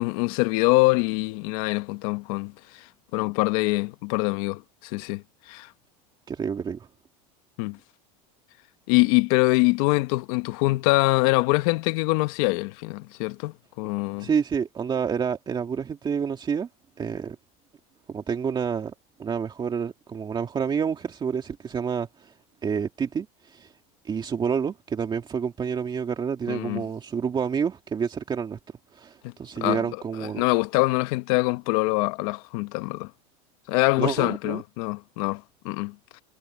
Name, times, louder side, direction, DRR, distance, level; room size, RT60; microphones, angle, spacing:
voice 1, 0.0-2.9 3.1-5.7 7.6-7.8 8.9-14.3 26.5-26.8 29.2-29.3 29.6-29.8 30.3-33.1 33.7-36.2, left 23 dB, 70° left, 1.2 m, -24 dB
voice 2, 6.3-6.9 14.2-16.7 17.0-17.4 18.1-18.9 19.2-22.3 22.6-23.7 24.0-28.6 28.9-30.4 34.0-34.6, right 6 dB, 25° right, 2.2 m, -28 dB
supercardioid pair, 130°, 19 cm